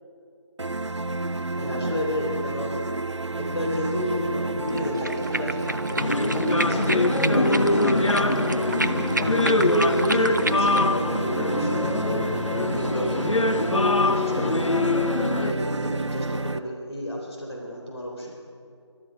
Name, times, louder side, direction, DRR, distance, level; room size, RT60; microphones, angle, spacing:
sound 1, 0.6-16.6, right 2 dB, 75° right, 0.7 m, -30 dB
voice 1, 1.6-2.8 3.4-8.5 9.2-14.9 15.4-18.3, equal, 60° left, -2 dB, 3.8 m, -31 dB
sound 2, 4.7-10.9, right 2 dB, 40° right, 0.4 m, -30 dB
sound 3, 6.0-15.5, left 2 dB, 90° left, 0.9 m, -24 dB
20.5 x 13.0 x 5.2 m, 2.4 s
figure-of-eight pair, 170°, 15 cm